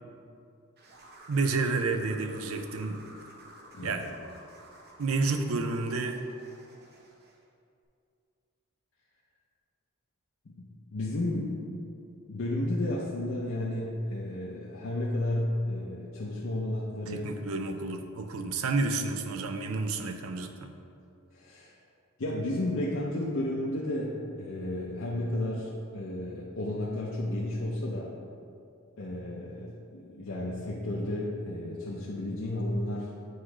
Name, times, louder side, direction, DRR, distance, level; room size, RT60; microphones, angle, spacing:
sound 1, 0.8-7.4, right 1 dB, 50° right, 0.8 m, -52 dB
voice 1, 1.3-3.0 3.8-4.1 5.0-6.2 17.1-20.7, right 3 dB, 75° right, 6 dB, 0.5 m, -30 dB
voice 2, 10.6-11.8 12.3-17.3 21.3-21.7 22.2-28.1 29.0-33.1, left 1 dB, 65° left, -4 dB, 0.6 m, -32 dB
7.9 x 3.1 x 4.8 m, 2.5 s
head